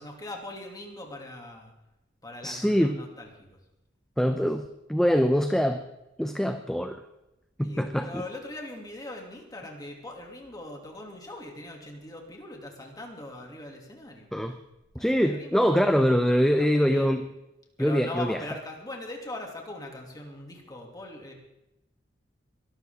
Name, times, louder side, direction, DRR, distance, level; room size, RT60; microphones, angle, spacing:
voice 1, 0.0-1.7 2.2-3.6 7.6-14.3 15.0-15.9 16.3-17.1 17.8-21.3, left 2 dB, 20° left, 1 dB, 2.8 m, -41 dB
voice 2, 2.4-3.0 4.2-5.9 6.2-7.0 7.6-8.1 14.3-14.6 15.0-17.3 17.8-18.4, equal, 5° left, 7 dB, 0.6 m, -24 dB
23.0 x 13.0 x 3.8 m, 0.90 s
head